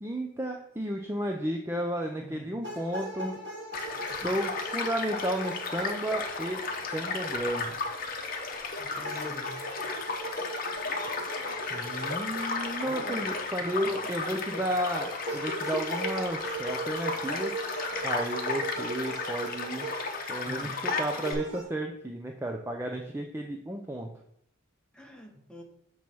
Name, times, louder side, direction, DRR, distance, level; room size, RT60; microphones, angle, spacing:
voice 1, 0.0-3.4 4.1-6.6 6.9-7.7 11.7-17.5 18.0-19.9 20.3-24.1, right 1 dB, 10° right, 2 dB, 0.4 m, -33 dB
voice 2, 2.2-2.5 4.1-4.3 8.8-9.6 12.8-13.3 13.6-14.7 20.5-20.8 24.9-25.6, equal, 5° left, 1 dB, 0.9 m, -44 dB
sound 1, 2.6-7.7 9.0-14.5 15.3-20.2 20.8-21.6, right 2 dB, 60° right, 1.4 m, -40 dB
Child speech kid speaking / Stream / Car passing by, 3.7-21.3, left 4 dB, 45° left, 0.8 m, -34 dB
6.9 x 3.1 x 5.9 m, 0.73 s
head